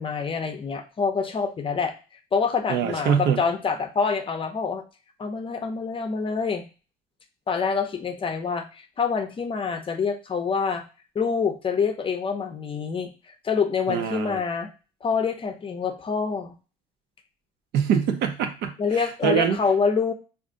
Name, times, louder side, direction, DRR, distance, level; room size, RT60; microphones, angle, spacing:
voice 1, 0.0-1.9 2.3-4.8 5.2-6.6 7.5-10.8 11.1-13.1 13.4-14.7 15.0-16.5 18.8-20.1, left 5 dB, 30° left, 7 dB, 0.6 m, -26 dB
voice 2, 2.7-3.4 13.9-14.4 17.7-19.6, right 8 dB, 80° right, 6 dB, 0.7 m, -24 dB
4.9 x 2.5 x 2.5 m, 0.34 s
cardioid pair, 110°, 17 cm